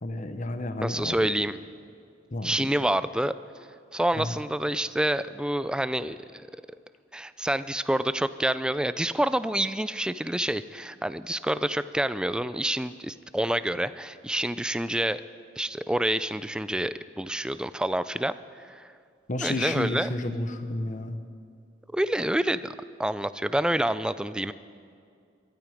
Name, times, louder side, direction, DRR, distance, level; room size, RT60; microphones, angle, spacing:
voice 1, 0.0-1.3 2.3-2.7 4.2-4.4 19.3-21.2, left 2 dB, 45° left, 9 dB, 1.0 m, -31 dB
voice 2, 0.8-1.6 2.4-3.3 3.9-6.4 7.1-15.2 15.6-18.4 18.7-18.9 19.4-20.1 21.9-22.7 23.0-24.5, right 1 dB, 5° right, 14 dB, 0.4 m, -27 dB
21.5 x 13.0 x 5.1 m, 2.3 s
head